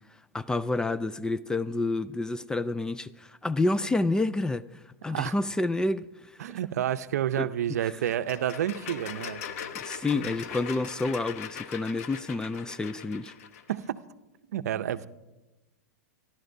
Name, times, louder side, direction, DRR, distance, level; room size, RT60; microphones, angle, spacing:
voice 1, 0.3-4.6 5.0-6.0 7.4-7.5 9.8-13.3, left 2 dB, 10° left, 0.3 m, -29 dB
voice 2, 6.4-9.4 10.1-10.3 13.7-14.0 14.5-15.1, right 11 dB, 70° right, 0.6 m, -30 dB
sound 1, 8.1-13.8, left 8 dB, 60° left, 1.0 m, -40 dB
25.5 x 11.5 x 2.7 m
hypercardioid pair, 115°, 9 cm